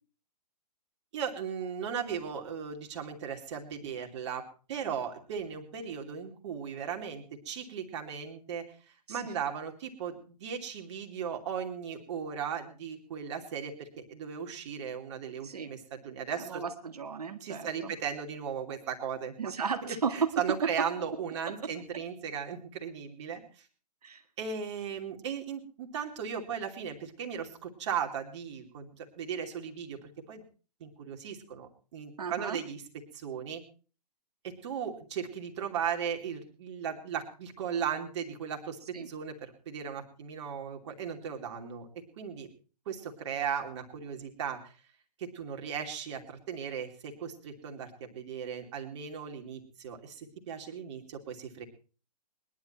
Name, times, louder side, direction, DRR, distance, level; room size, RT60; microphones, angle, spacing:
voice 1, 1.1-8.7 9.1-16.6 17.4-19.3 20.1-23.7 24.4-30.0 30.3-30.4 30.8-32.8 33.1-33.6 34.4-41.9 42.2-42.5 42.9-44.7 45.2-51.6, right 7 dB, 45° right, 3 dB, 2.8 m, -37 dB
voice 2, 16.4-17.9 19.4-20.9 21.5-21.6 21.9-22.0 24.0-24.2 32.2-32.6 38.9-39.1, right 6 dB, 65° right, 6 dB, 1.9 m, -34 dB
21.0 x 11.0 x 4.4 m, 0.37 s
figure-of-eight pair, 120°, 21 cm